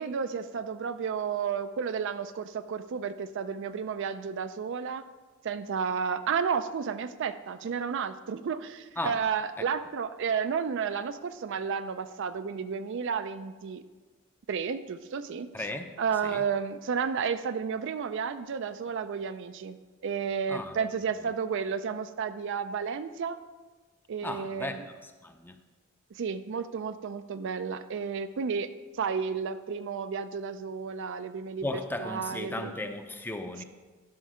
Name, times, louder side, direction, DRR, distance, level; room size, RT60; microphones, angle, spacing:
voice 1, 0.0-5.0 5.4-13.8 14.5-15.7 16.0-19.8 20.0-23.4 24.1-24.9 26.1-32.7 33.6-33.7, right 6 dB, 60° right, 11 dB, 0.4 m, -32 dB
voice 2, 15.5-15.9 16.3-16.4 20.5-20.7 24.2-24.8 25.2-25.6 31.6-33.6, left 2 dB, 10° left, 7 dB, 0.6 m, -35 dB
11.5 x 5.5 x 4.9 m, 1.3 s
head